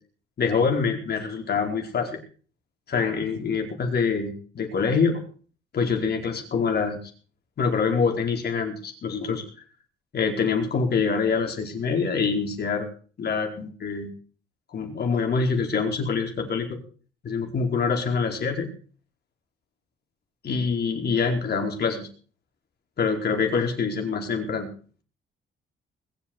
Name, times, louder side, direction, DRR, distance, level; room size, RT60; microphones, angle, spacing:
voice 1, 0.4-2.2 2.9-5.2 5.7-7.0 7.6-9.4 10.1-12.9 13.2-14.1 14.7-16.8 17.2-18.7 20.4-22.1 23.0-24.7, left 5 dB, 55° left, 2 dB, 4.8 m, -25 dB
21.0 x 8.0 x 6.5 m, 0.41 s
cardioid pair, 90°, 20 cm